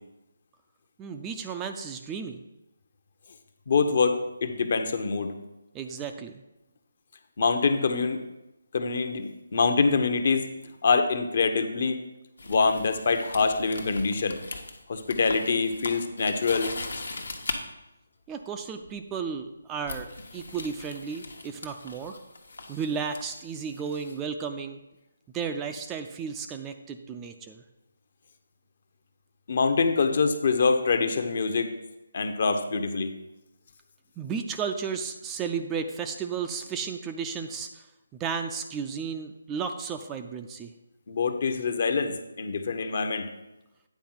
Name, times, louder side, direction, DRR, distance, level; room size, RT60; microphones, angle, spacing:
voice 1, 1.0-2.4 5.7-6.3 18.3-22.2 22.7-24.8 25.3-27.6 34.2-37.8 38.2-40.7, right 6 dB, 15° right, 6 dB, 0.4 m, -33 dB
voice 2, 3.7-5.3 7.4-8.2 8.7-10.5 10.8-12.0 12.5-14.4 14.9-16.7 29.5-31.7 32.1-33.1 41.1-43.3, left 4 dB, 50° left, 7 dB, 0.8 m, -25 dB
sound 1, 12.4-17.6 18.8-19.1 19.8-24.2, left 3 dB, 70° left, 1.1 m, -40 dB
9.3 x 4.2 x 5.5 m, 0.94 s
figure-of-eight pair, 150°, 0 cm